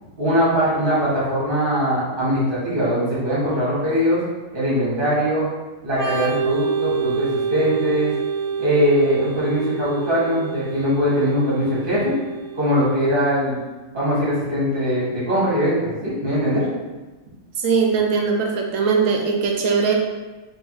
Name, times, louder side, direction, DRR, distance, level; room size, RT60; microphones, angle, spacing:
voice 1, 0.2-4.2 4.5-5.5 5.8-8.1 8.6-12.1 12.5-13.6 13.9-16.7, equal, 40° right, -7 dB, 1.7 m, -21 dB
Organ, 5.9-13.4, right 6 dB, 15° right, 1.2 m, -27 dB
voice 2, 17.6-19.9, right 5 dB, 80° right, 1 dB, 1.1 m, -20 dB
3.6 x 3.0 x 4.6 m, 1.2 s
omnidirectional pair, 1.4 m